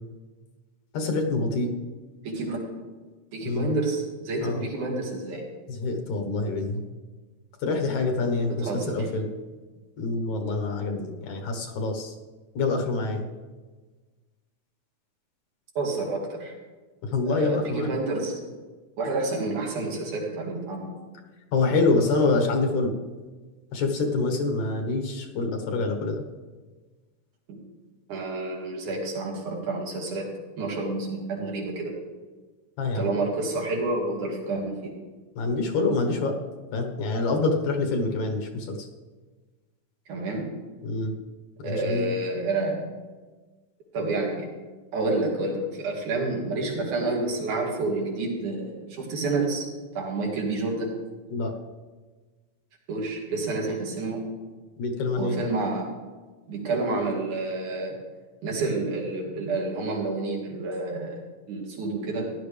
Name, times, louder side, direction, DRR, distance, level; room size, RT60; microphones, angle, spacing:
voice 1, 0.9-1.7 3.4-3.7 4.4-4.7 5.8-6.8 7.6-9.3 10.0-12.1 12.6-13.3 17.1-17.9 21.5-22.9 23.7-26.2 32.8-33.1 35.4-36.3 36.7-38.8 40.8-41.1 41.6-42.2 51.3-51.5 54.8-55.4, left 3 dB, 75° left, 3 dB, 2.7 m, -26 dB
voice 2, 2.2-2.7 3.3-5.4 8.5-9.1 15.8-16.5 17.3-18.4 19.0-20.9 27.5-27.6 28.1-30.3 30.6-32.0 32.9-34.9 40.1-40.5 41.6-42.8 43.9-44.5 44.9-49.7 50.0-50.9 52.9-54.3 55.2-55.9 56.5-58.0 58.4-62.3, right 2 dB, 85° right, -1 dB, 3.6 m, -29 dB
16.0 x 11.0 x 3.4 m, 1.3 s
omnidirectional pair, 3.4 m